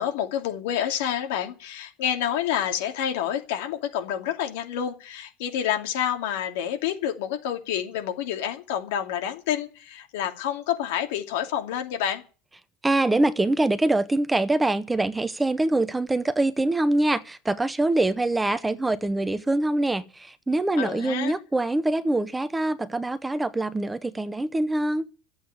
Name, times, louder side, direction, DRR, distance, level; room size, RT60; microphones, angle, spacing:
voice 1, 0.0-12.2 20.8-21.4, left 10 dB, 90° left, 2.6 m, -28 dB
voice 2, 12.8-25.1, right 2 dB, 5° right, 0.6 m, -24 dB
12.5 x 7.9 x 10.0 m
cardioid pair, 165°, 0 cm